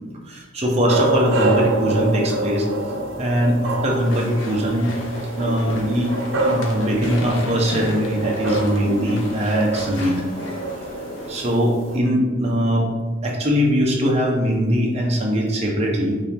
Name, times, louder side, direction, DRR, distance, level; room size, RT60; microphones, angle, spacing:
voice 1, 0.3-2.7 3.2-4.9 5.4-6.1 6.4-10.2 11.3-12.9 13.2-16.2, equal, 35° right, -2 dB, 1.1 m, -21 dB
sound 1, 0.9-12.0, right 2 dB, 90° right, 0.8 m, -27 dB
Walk footsteps / Chatter / Squeak, 3.9-11.6, left 1 dB, 80° left, 1.0 m, -33 dB
8.7 x 3.0 x 3.7 m, 1.3 s
head